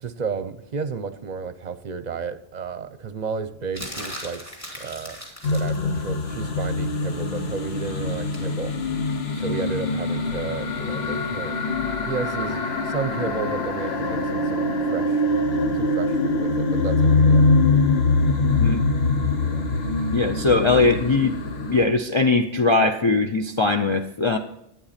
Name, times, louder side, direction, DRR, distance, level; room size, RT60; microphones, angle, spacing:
voice 1, 0.0-8.7 9.3-11.7 12.0-15.2 15.7-17.5 19.4-19.7, right 5 dB, 50° right, 12 dB, 0.7 m, -32 dB
sound 1, 3.7-5.8 8.3-8.5, equal, 15° left, 2.6 m, -37 dB
sound 2, 5.4-21.8, left 3 dB, 80° left, 1.3 m, -23 dB
voice 2, 20.1-21.3 21.7-24.4, left 3 dB, 35° left, 5 dB, 0.6 m, -20 dB
12.0 x 9.1 x 4.2 m, 0.81 s
omnidirectional pair, 1.0 m